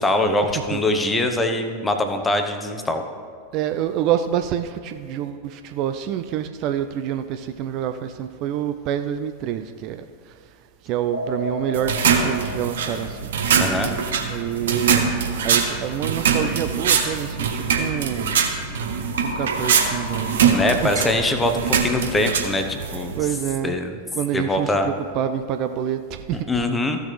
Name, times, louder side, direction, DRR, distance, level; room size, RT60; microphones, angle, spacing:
voice 1, 0.0-3.0 13.6-13.9 20.5-23.1 23.6-24.0 24.3-24.9 26.3-27.0, left 1 dB, 10° left, 6 dB, 0.8 m, -23 dB
voice 2, 3.5-10.0 10.9-13.3 14.2-15.1 15.4-18.3 19.2-20.6 23.2-23.7 24.1-26.5, right 10 dB, 40° right, 9 dB, 0.4 m, -27 dB
sound 1, 11.1-14.3 19.1-21.9, left 1 dB, 85° left, 1.1 m, -34 dB
sound 2, 11.7-23.2, right 6 dB, 60° right, 0.9 m, -23 dB
15.0 x 6.4 x 3.3 m, 2.1 s
figure-of-eight pair, 90°, 0 cm